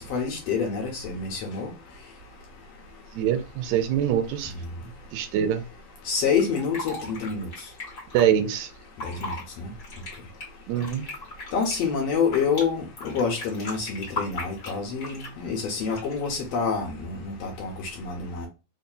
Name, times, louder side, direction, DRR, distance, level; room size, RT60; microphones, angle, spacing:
voice 1, 0.0-1.7 6.1-7.5 9.0-9.7 11.5-17.7 18.0-18.5, left 5 dB, 70° left, 1.6 m, -27 dB
voice 2, 3.1-4.5 5.1-5.6 8.1-8.7 10.7-11.1, right 9 dB, 75° right, 1.8 m, -24 dB
Fill (with liquid), 6.2-8.2 8.8-9.4 9.8-12.6 13.0-15.4 15.9-16.3, left 2 dB, 35° left, 1.5 m, -37 dB
4.7 x 2.7 x 2.2 m
omnidirectional pair, 3.6 m